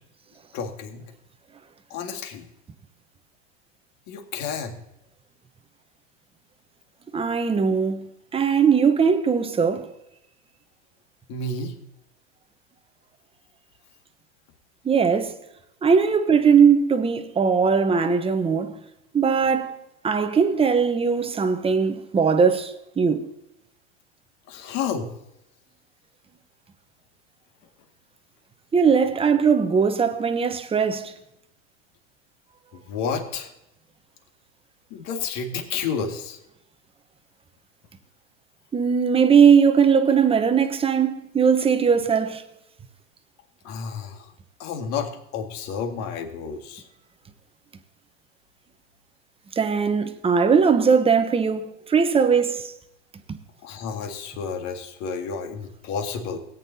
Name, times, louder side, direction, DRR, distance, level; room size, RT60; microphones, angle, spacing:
voice 1, 0.5-1.0 1.9-2.5 4.1-4.8 11.3-11.7 24.5-25.1 32.7-33.5 34.9-36.4 43.6-44.3 44.6-46.8 53.6-56.4, left 5 dB, 50° left, 2.0 m, -31 dB
voice 2, 7.1-8.1 8.3-9.9 14.8-15.3 15.8-18.8 19.1-19.8 20.0-23.2 28.7-31.1 38.7-42.4 49.5-52.7 53.3-53.4, right 6 dB, 15° right, 1.0 m, -20 dB
17.5 x 9.3 x 2.8 m
hypercardioid pair, 115°, 36 cm